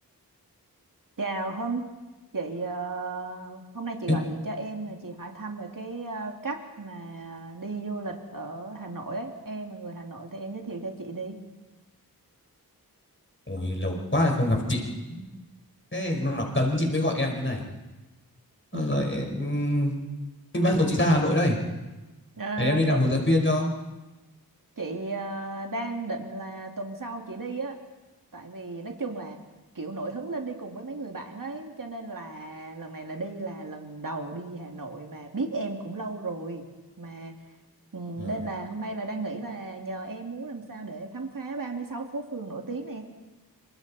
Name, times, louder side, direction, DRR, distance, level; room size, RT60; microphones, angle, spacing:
voice 1, 1.2-1.9 2.3-11.4 18.7-19.1 22.4-23.0 24.8-27.8 28.3-29.4 29.7-36.6 37.0-37.3 37.9-43.0, right 3 dB, 60° right, 2 dB, 2.6 m, -34 dB
voice 2, 13.5-14.8 15.1-15.2 15.9-17.6 18.7-19.9 20.5-21.6 22.6-23.7 38.2-38.4, left 1 dB, 30° left, 1 dB, 4.9 m, -24 dB
26.5 x 24.5 x 4.3 m, 1.1 s
wide cardioid pair, 50°, 38 cm